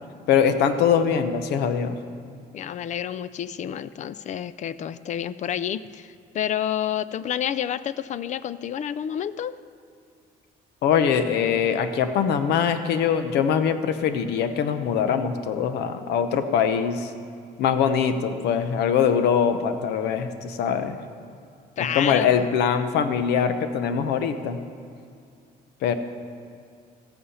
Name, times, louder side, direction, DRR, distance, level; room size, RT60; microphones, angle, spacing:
voice 1, 0.3-2.0 10.8-17.1 17.6-21.0 21.8-24.6 25.8-25.9, left 7 dB, 80° left, 10 dB, 0.9 m, -22 dB
voice 2, 2.5-9.6 21.8-22.5, left 10 dB, 45° left, 16 dB, 0.4 m, -29 dB
14.0 x 8.7 x 5.6 m, 2.4 s
cardioid pair, 110°, 17 cm